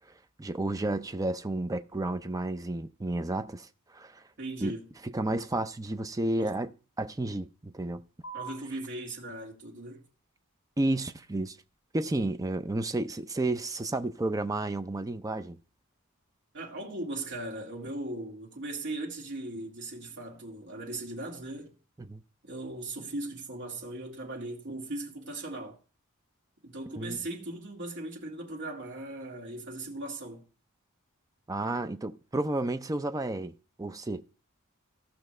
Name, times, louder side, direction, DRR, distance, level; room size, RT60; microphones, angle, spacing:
voice 1, 0.4-3.7 3.9-4.2 4.6-4.7 5.0-6.7 7.0-8.0 10.8-11.6 11.9-15.6 22.0-22.2 26.9-27.2 31.5-34.2, right 2 dB, 15° right, 0.5 m, -31 dB
voice 2, 4.4-4.9 6.4-6.5 8.3-10.0 16.5-21.7 22.4-25.8 26.6-30.4, right 2 dB, 55° right, 2.3 m, -38 dB
sound 1, 8.2-15.2, right 5 dB, 60° left, 5.2 m, -53 dB
16.0 x 5.9 x 3.2 m
head